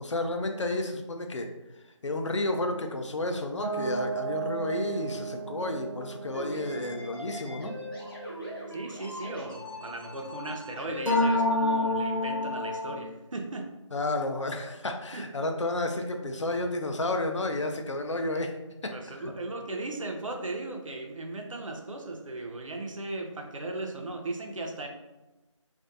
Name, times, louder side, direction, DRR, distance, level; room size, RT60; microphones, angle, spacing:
voice 1, 0.0-1.5 2.0-7.7 13.9-18.6 19.1-19.3, left 2 dB, 65° left, 4 dB, 0.4 m, -31 dB
sound 1, 3.6-9.0 11.1-13.0, left 1 dB, 80° left, 0.9 m, -31 dB
sound 2, 6.3-11.4, left 1 dB, 45° left, 0.9 m, -41 dB
voice 2, 8.7-13.7 15.1-15.3 18.9-24.9, right 2 dB, 80° right, 3 dB, 0.5 m, -37 dB
2.5 x 2.1 x 2.5 m, 1.0 s
figure-of-eight pair, 170°, 16 cm